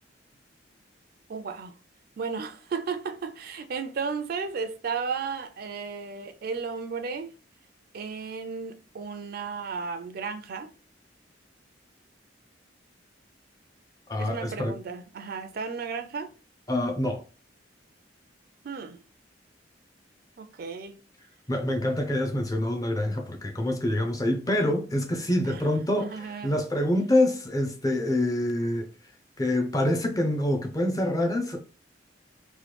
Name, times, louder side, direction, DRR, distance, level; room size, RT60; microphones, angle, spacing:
voice 1, 1.3-1.7 2.2-7.3 7.9-10.7 14.2-16.3 18.6-19.0 20.4-21.0 25.5-25.6 26.0-26.6, right 5 dB, 55° right, 0.4 m, -34 dB
voice 2, 14.1-14.8 16.7-17.2 21.5-28.9 29.4-31.6, left 1 dB, 20° left, 0.5 m, -26 dB
3.1 x 2.2 x 3.2 m
head